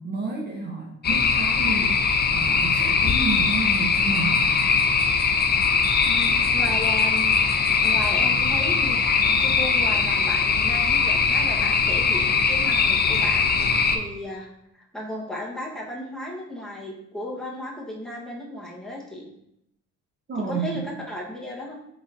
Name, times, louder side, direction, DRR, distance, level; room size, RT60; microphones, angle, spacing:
voice 1, 0.0-2.0 2.3-4.5 20.3-20.8, right 3 dB, 35° right, -1 dB, 0.9 m, -30 dB
sound 1, 1.0-14.0, left 5 dB, 35° left, 0.5 m, -21 dB
voice 2, 6.0-7.5 7.8-19.3 20.5-21.7, left 1 dB, ahead, -4 dB, 1.2 m, -35 dB
5.0 x 3.7 x 2.6 m, 0.79 s
cardioid pair, 90°, 30 cm